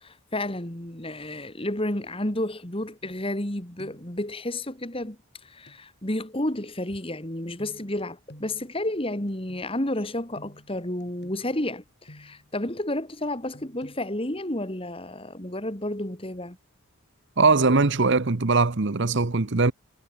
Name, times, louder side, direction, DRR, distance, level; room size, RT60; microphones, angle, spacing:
voice 1, 0.0-16.6, left 1 dB, 25° left, 2.4 m, -31 dB
sound 1, 3.4-3.5 3.8-4.2 5.7-5.8 7.6-12.6 13.5-14.0, equal, 50° left, 4.5 m, -51 dB
voice 2, 17.4-19.7, right 3 dB, 55° right, 0.9 m, -21 dB
head